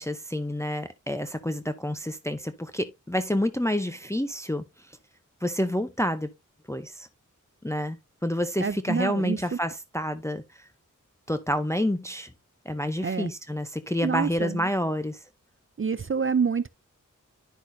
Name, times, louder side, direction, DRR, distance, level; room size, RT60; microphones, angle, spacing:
voice 1, 0.0-5.0 5.4-6.3 6.7-7.1 7.6-10.7 11.3-12.3 12.6-15.2, left 1 dB, 10° left, 0.7 m, -29 dB
voice 2, 8.6-9.4 13.0-13.3 14.0-14.6 15.8-16.7, right 6 dB, 40° right, 0.5 m, -27 dB
10.5 x 6.1 x 2.7 m
wide cardioid pair, 55°, 32 cm